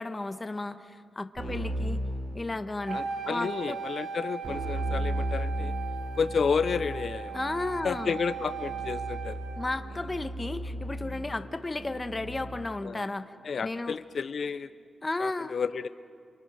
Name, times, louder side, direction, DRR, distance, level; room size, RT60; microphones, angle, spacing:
voice 1, 0.0-2.0 2.3-3.0 3.3-3.8 7.3-8.1 9.6-13.3 13.6-14.0 15.0-15.5, left 2 dB, 25° left, 9 dB, 1.2 m, -33 dB
Keyboard (musical), 1.4-3.0 4.4-12.8, right 1 dB, 55° right, 3.5 m, -36 dB
voice 2, 2.9-5.7 6.1-7.4 7.8-9.4 10.7-10.8 12.8-13.1 13.4-14.7 15.2-15.9, left 5 dB, 60° left, 13 dB, 0.7 m, -31 dB
Wind instrument woodwind instrument, 2.9-9.8, right 7 dB, 80° right, 2.3 m, -38 dB
28.5 x 28.0 x 6.4 m, 2.3 s
cardioid pair, 90°, 0 cm